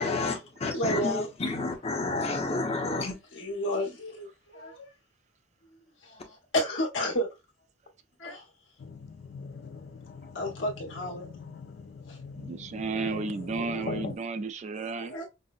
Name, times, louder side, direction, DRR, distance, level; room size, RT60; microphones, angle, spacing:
voice 1, 0.0-3.2, left 3 dB, 35° left, 0.8 m, -30 dB
voice 2, 0.7-1.3 2.8-4.9 6.0-7.3 8.2-8.5 10.3-11.3 12.1-12.2 12.9-13.1 15.0-15.3, left 1 dB, 75° left, 1.2 m, -32 dB
sound 1, 8.8-14.1, left 5 dB, 60° left, 0.4 m, -41 dB
voice 3, 12.4-15.1, right 4 dB, 35° right, 0.3 m, -33 dB
5.3 x 2.1 x 2.4 m
head